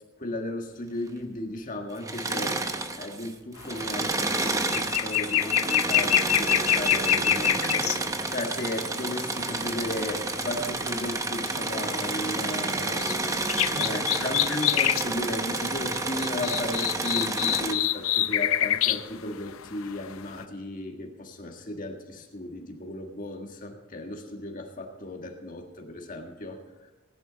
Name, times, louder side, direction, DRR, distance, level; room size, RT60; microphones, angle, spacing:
voice 1, 0.2-2.6 3.0-13.0 13.7-26.6, left 1 dB, 40° left, 2 dB, 1.6 m, -35 dB
Engine / Mechanisms, 2.0-3.3 3.6-17.7, right 3 dB, 15° right, 0.8 m, -30 dB
sound 1, 3.6-3.8 4.1-8.0 8.8-9.5 11.5-11.7 12.1-13.2 13.5-15.1 15.5-15.6 15.8-19.1 19.5-20.1 20.4-20.5, left 12 dB, 80° left, 0.6 m, -26 dB
19.0 x 10.5 x 4.0 m, 1.2 s
head